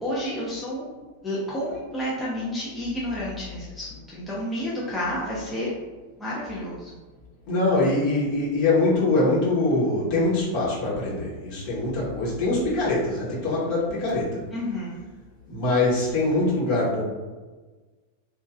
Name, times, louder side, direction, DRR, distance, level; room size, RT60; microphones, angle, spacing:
voice 1, 0.0-0.8 1.2-5.7 6.2-7.0 14.5-15.0, equal, 10° left, -8 dB, 0.6 m, -30 dB
voice 2, 7.5-14.4 15.5-17.0, left 2 dB, 45° left, -7 dB, 1.1 m, -23 dB
3.0 x 2.4 x 2.5 m, 1.3 s
figure-of-eight pair, 90°, 0 cm